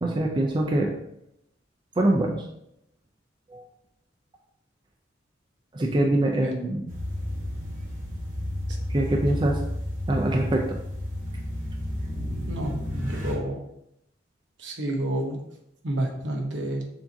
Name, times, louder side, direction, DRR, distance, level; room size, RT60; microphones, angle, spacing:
voice 1, 0.0-0.9 2.0-2.4 3.5-3.6 5.7-6.9 8.9-9.6 10.1-10.8, right 1 dB, 25° right, 0 dB, 0.4 m, -24 dB
sound 1, 6.9-13.3, left 1 dB, 45° right, 1.1 m, -32 dB
voice 2, 12.5-13.6 14.6-15.4 15.8-16.8, right 1 dB, 75° right, 1 dB, 0.9 m, -29 dB
6.9 x 2.7 x 2.6 m, 0.79 s
head